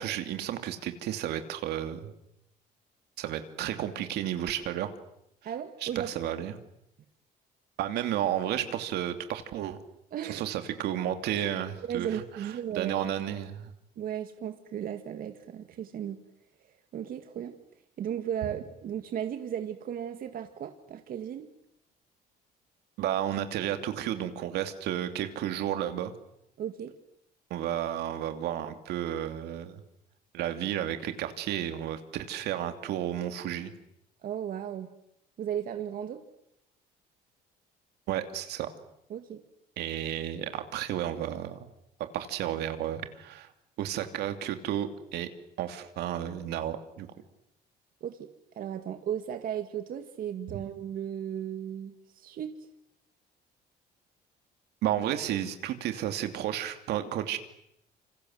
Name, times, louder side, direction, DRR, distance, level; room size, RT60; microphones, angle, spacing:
voice 1, 0.0-2.1 3.2-4.9 5.8-6.6 7.8-9.8 10.2-13.7 23.0-26.1 27.5-29.8 30.3-33.7 38.1-38.7 39.8-41.7 42.1-43.5 43.8-45.3 45.6-47.1 50.5-50.6 54.8-57.4, right 11 dB, 80° right, 8 dB, 2.8 m, -32 dB
voice 2, 5.4-6.1 10.1-10.4 11.8-13.0 14.0-16.2 16.9-17.5 18.0-21.5 26.6-26.9 34.2-34.9 35.4-36.2 39.1-39.4 48.0-48.3 48.6-52.5, right 9 dB, 60° right, 7 dB, 2.0 m, -35 dB
28.0 x 26.0 x 7.9 m, 0.78 s
cardioid pair, 110°, 17 cm